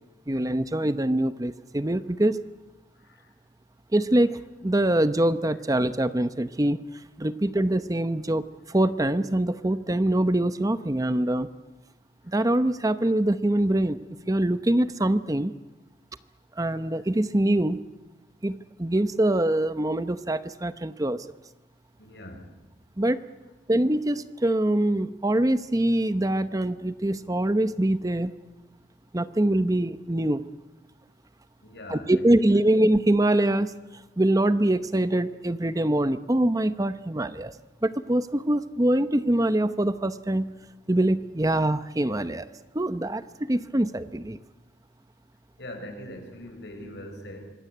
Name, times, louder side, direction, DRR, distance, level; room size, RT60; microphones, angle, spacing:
voice 1, 0.3-2.4 3.9-6.8 7.2-11.5 12.3-14.0 14.3-15.5 16.6-17.8 18.4-21.3 23.0-23.2 23.7-28.3 29.1-30.4 31.9-33.7 34.2-37.5 37.8-40.5 40.9-42.5 42.7-44.4, right 1 dB, 20° right, 12 dB, 0.8 m, -24 dB
voice 2, 22.0-22.5 31.6-32.4 45.6-47.5, left 1 dB, 70° left, 5 dB, 6.3 m, -42 dB
26.0 x 21.5 x 9.5 m, 1.1 s
head